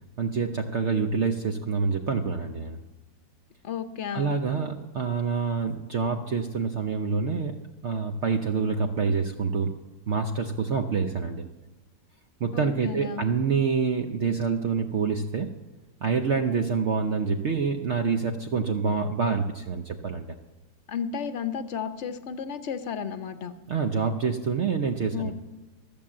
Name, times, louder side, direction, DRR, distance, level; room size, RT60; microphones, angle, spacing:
voice 1, 0.2-2.8 4.1-7.6 7.8-9.8 10.1-11.5 12.4-15.5 16.0-20.3 23.7-25.3, right 5 dB, 55° right, 5 dB, 0.8 m, -27 dB
voice 2, 3.6-4.4 12.5-13.3 20.9-23.5 25.1-25.3, left 7 dB, 55° left, 10 dB, 0.9 m, -33 dB
14.0 x 7.1 x 7.4 m, 1.2 s
omnidirectional pair, 1.8 m